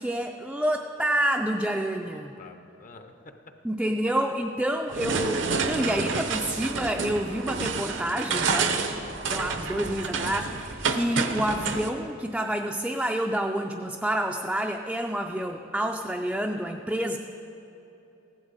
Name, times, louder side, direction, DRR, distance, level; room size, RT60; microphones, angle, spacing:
voice 1, 0.0-2.3 3.6-17.2, right 1 dB, 5° right, 2 dB, 0.3 m, -28 dB
voice 2, 2.0-3.5, left 3 dB, 45° left, 7 dB, 0.6 m, -49 dB
sound 1, 4.9-11.9, right 4 dB, 75° right, 0.8 m, -29 dB
15.5 x 11.5 x 4.0 m, 2.9 s
head